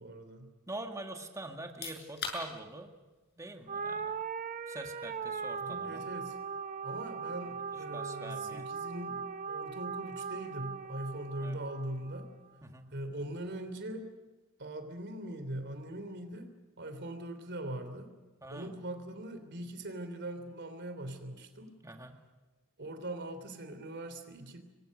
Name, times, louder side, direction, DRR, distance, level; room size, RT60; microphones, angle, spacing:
voice 1, 0.0-0.5 5.6-6.4 6.8-12.3 12.9-14.1 14.6-16.5 16.8-18.1 18.5-21.7 22.8-24.6, right 1 dB, 55° right, 8 dB, 3.3 m, -41 dB
voice 2, 0.7-2.9 3.4-4.2 4.7-6.1 7.9-8.8 11.4-11.6 12.6-12.9 18.4-18.7 21.8-22.2, right 2 dB, 15° right, 4 dB, 2.0 m, -44 dB
sound 1, 1.6-14.2, left 5 dB, 50° left, 7.2 m, -51 dB
sound 2, 3.7-12.3, right 5 dB, 35° right, 0.8 m, -39 dB
28.0 x 23.5 x 6.6 m, 1.2 s
head